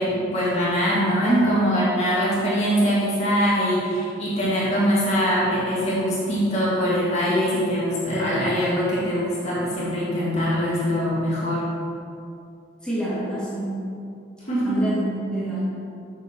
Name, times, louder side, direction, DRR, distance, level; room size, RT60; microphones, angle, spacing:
voice 1, 0.0-11.6 14.5-14.7, equal, 35° left, -8 dB, 2.0 m, -22 dB
voice 2, 12.8-13.8 14.6-15.6, right 1 dB, 5° left, -10 dB, 1.9 m, -27 dB
7.0 x 6.4 x 4.5 m, 2.5 s
head